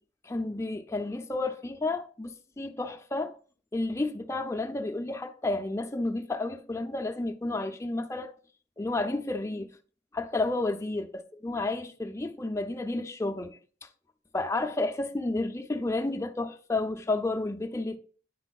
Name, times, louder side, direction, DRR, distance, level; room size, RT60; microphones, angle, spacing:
voice 1, 0.2-3.4 3.7-8.3 8.8-9.7 10.1-13.6 14.3-18.0, left 2 dB, 15° left, 0.4 m, -31 dB
9.8 x 4.4 x 2.3 m
head